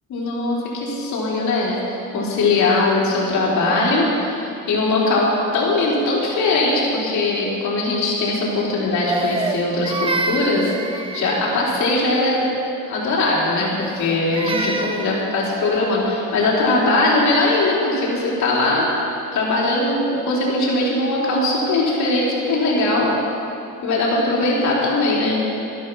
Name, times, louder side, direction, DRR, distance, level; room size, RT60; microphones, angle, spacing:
voice 1, 0.1-10.7 11.1-12.5 12.9-18.9 19.3-23.1 23.8-25.5, left 2 dB, 60° left, -5 dB, 3.5 m, -20 dB
Crying sobbing, 9.1-11.6 13.8-15.3, right 3 dB, 15° right, 0.6 m, -27 dB
13.0 x 11.0 x 6.2 m, 2.7 s
cardioid pair, 155°, 33 cm